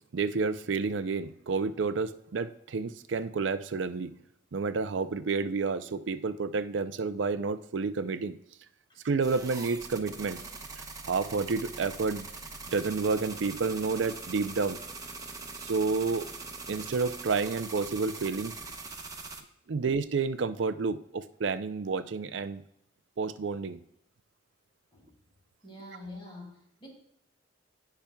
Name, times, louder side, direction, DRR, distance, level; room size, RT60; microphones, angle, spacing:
voice 1, 0.1-4.1 4.5-8.4 9.0-10.4 11.0-12.3 12.7-14.8 15.6-16.3 16.7-18.5 19.7-22.6 23.2-23.8, right 4 dB, 70° right, 11 dB, 0.5 m, -30 dB
sound 1, 9.2-19.4, right 3 dB, 20° right, 1.0 m, -42 dB
voice 2, 25.6-26.9, left 1 dB, 25° left, -1 dB, 2.3 m, -46 dB
17.0 x 5.8 x 2.3 m, 0.73 s
head